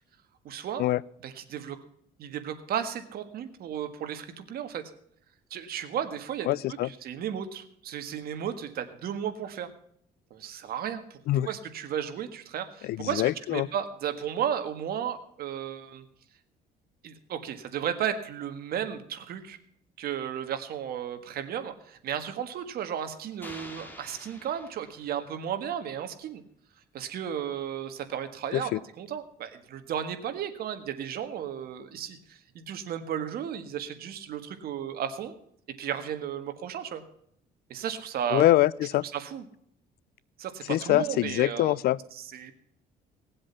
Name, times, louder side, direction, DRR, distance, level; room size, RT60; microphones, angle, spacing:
voice 1, 0.4-0.8 1.2-1.8 2.2-4.8 5.5-6.5 6.8-9.7 10.3-11.2 11.4-16.0 17.0-19.6 20.0-26.4 26.9-35.3 35.8-37.0 37.7-38.4 39.1-39.4 40.4-41.7 42.1-42.5, right 9 dB, 65° right, 9 dB, 1.6 m, -34 dB
voice 2, 6.5-6.9 11.3-11.5 12.8-13.7 28.5-28.8 38.3-39.0 40.7-42.0, left 15 dB, 70° left, 23 dB, 0.4 m, -24 dB
sound 1, 23.4-25.6, left 1 dB, 10° left, 2.3 m, -47 dB
18.5 x 7.8 x 5.7 m, 0.69 s
cardioid pair, 110°, 17 cm